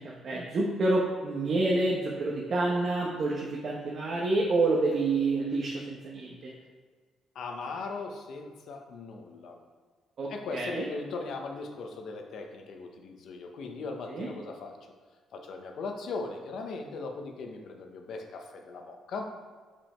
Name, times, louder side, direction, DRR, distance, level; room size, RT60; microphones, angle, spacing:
voice 1, 0.0-6.5 10.2-10.9 14.1-14.3, right 2 dB, 55° right, -3 dB, 1.0 m, -28 dB
voice 2, 7.3-9.6 10.3-14.7 15.3-19.5, left 3 dB, 70° left, 3 dB, 0.9 m, -39 dB
5.5 x 5.4 x 4.4 m, 1.5 s
cardioid pair, 90°, 0 cm